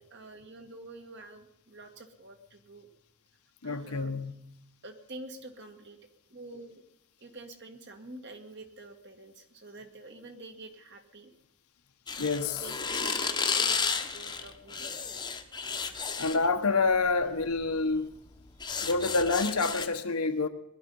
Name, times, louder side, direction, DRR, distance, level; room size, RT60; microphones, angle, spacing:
voice 1, 0.0-2.9 3.6-4.1 4.8-6.0 6.3-6.8 7.2-11.3 12.6-15.3 18.8-18.9, right 2 dB, 50° right, 5 dB, 1.8 m, -47 dB
voice 2, 3.6-4.3 12.2-12.6 16.2-18.1 18.8-20.5, left 3 dB, 85° left, 6 dB, 1.3 m, -27 dB
sound 1, 12.1-16.5 17.4-17.6 18.0-19.9, left 5 dB, 20° left, 1.0 m, -32 dB
20.5 x 11.5 x 5.5 m, 0.79 s
head